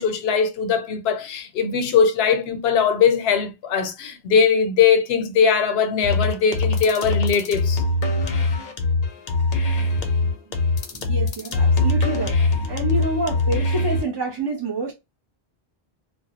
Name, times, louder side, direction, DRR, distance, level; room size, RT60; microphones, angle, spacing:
voice 1, 0.0-7.8, left 6 dB, 80° left, 0.8 m, -20 dB
sound 1, 6.0-14.0, left 3 dB, 50° left, 0.5 m, -22 dB
voice 2, 10.9-14.9, right 2 dB, 35° right, 0.5 m, -28 dB
2.3 x 2.1 x 2.7 m
omnidirectional pair, 1.0 m